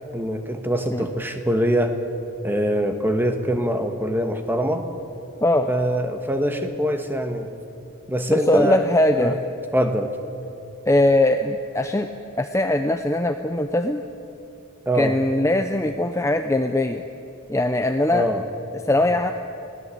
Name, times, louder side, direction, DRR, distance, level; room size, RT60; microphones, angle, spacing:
voice 1, 0.1-2.0 2.4-4.8 5.7-7.5 8.1-8.8 9.2-9.3 9.7-10.1 14.8-15.1 18.1-18.4, equal, 10° right, 6 dB, 1.3 m, -23 dB
voice 2, 8.3-9.4 10.9-12.1 12.4-14.0 14.9-17.0 17.5-18.3 18.8-19.3, left 1 dB, 15° left, 6 dB, 0.6 m, -20 dB
21.5 x 16.5 x 8.4 m, 2.8 s
head